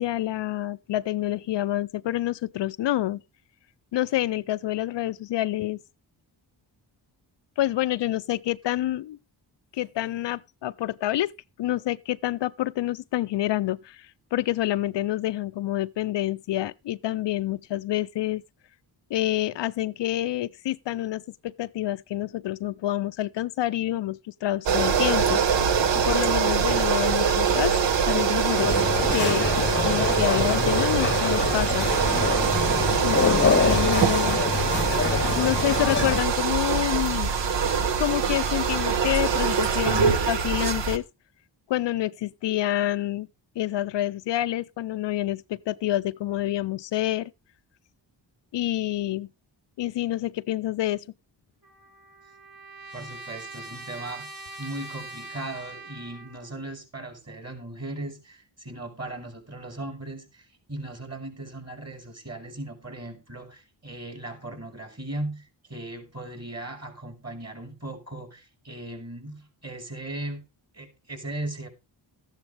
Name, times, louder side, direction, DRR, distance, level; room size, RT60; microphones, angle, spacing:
voice 1, 0.0-3.2 3.9-5.8 7.6-9.2 9.7-11.3 11.6-18.4 19.1-25.4 26.0-27.7 28.1-28.7 29.1-31.9 33.0-34.4 35.3-37.3 38.0-41.0 41.7-43.3 43.6-47.3 48.5-49.3 49.8-51.0, left 14 dB, 75° left, 0.5 m, -27 dB
sound 1, 24.7-41.0, right 6 dB, 75° right, 1.2 m, -23 dB
sound 2, 28.6-36.2, left 5 dB, 25° left, 0.9 m, -26 dB
Trumpet, 51.6-56.5, right 2 dB, 55° right, 6.7 m, -42 dB
voice 2, 52.9-54.3 54.6-70.4 70.7-71.7, right 2 dB, 35° right, 4.7 m, -38 dB
13.5 x 10.5 x 3.3 m
cardioid pair, 80°, 44 cm